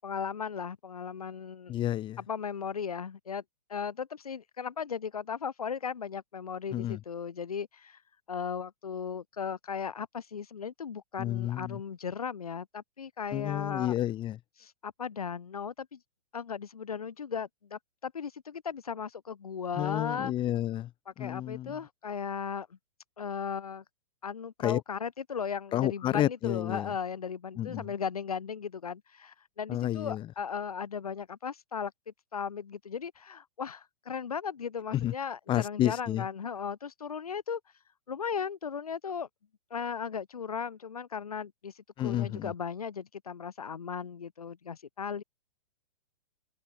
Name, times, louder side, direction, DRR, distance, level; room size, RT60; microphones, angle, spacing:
voice 1, 0.0-1.7 2.2-3.4 3.7-8.0 8.3-13.9 14.6-16.0 16.3-20.3 21.2-22.7 23.2-23.8 24.2-31.9 32.3-37.6 38.1-39.3 39.7-45.2, left 6 dB, 75° left, 7.1 m, -36 dB
voice 2, 1.7-2.2 6.7-7.0 11.2-11.8 13.3-14.4 19.8-20.9 21.2-21.8 24.6-24.8 25.7-26.9 27.6-27.9 29.7-30.3 34.9-35.1 35.5-36.3 42.0-42.5, left 13 dB, 25° left, 3.8 m, -30 dB
figure-of-eight pair, 115°, 19 cm